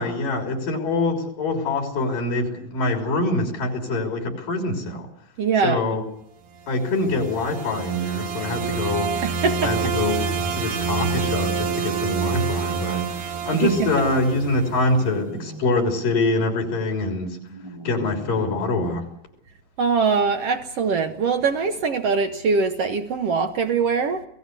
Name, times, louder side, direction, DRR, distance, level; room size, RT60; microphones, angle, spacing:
voice 1, 0.0-5.1 5.6-6.0 6.7-9.2 9.6-13.1 13.5-17.4 17.8-19.1, left 2 dB, 75° left, 5.1 m, -24 dB
voice 2, 5.4-5.8 9.2-9.7 13.5-13.9 19.8-24.3, right 5 dB, 65° right, 1.6 m, -22 dB
sound 1, 6.8-15.0, right 5 dB, 80° right, 3.6 m, -27 dB
sound 2, 9.8-11.2 13.5-14.6 15.0-15.7 17.5-18.6, right 1 dB, 15° right, 1.1 m, -40 dB
27.5 x 18.0 x 6.8 m
omnidirectional pair, 3.9 m